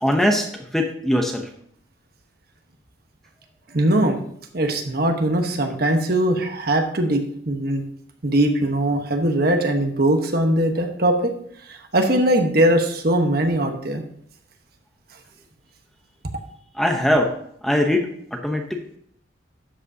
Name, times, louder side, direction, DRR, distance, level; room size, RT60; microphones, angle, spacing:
voice 1, 0.0-1.5 16.7-17.3 17.6-18.8, left 1 dB, ahead, 3 dB, 0.8 m, -21 dB
voice 2, 3.7-4.2 4.5-7.8 8.2-11.3 11.7-14.0, right 1 dB, 50° right, 4 dB, 1.2 m, -20 dB
12.5 x 8.1 x 2.8 m, 0.68 s
head